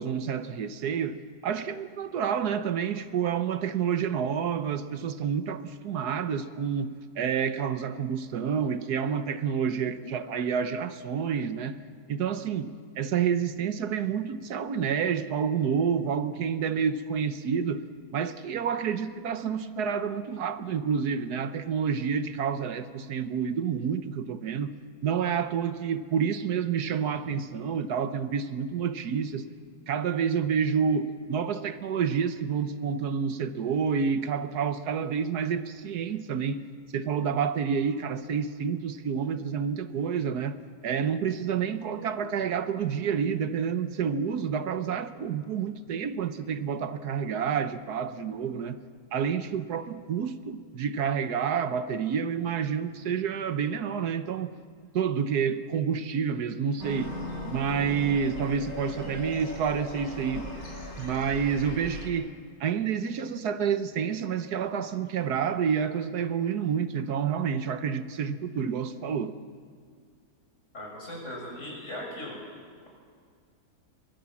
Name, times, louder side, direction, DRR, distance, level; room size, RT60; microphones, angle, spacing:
voice 1, 0.0-11.8 12.1-17.8 18.1-24.7 25.0-29.5 29.9-36.6 36.9-40.6 40.8-48.8 49.1-54.5 54.9-57.1 57.4-60.5 61.0-62.3 62.6-69.4, right 7 dB, 85° right, 1.5 m, -29 dB
sound 1, 56.8-62.1, left 1 dB, 70° left, 4.2 m, -38 dB
voice 2, 70.7-72.4, left 1 dB, 50° left, 6.9 m, -38 dB
23.5 x 21.5 x 7.3 m
omnidirectional pair, 1.7 m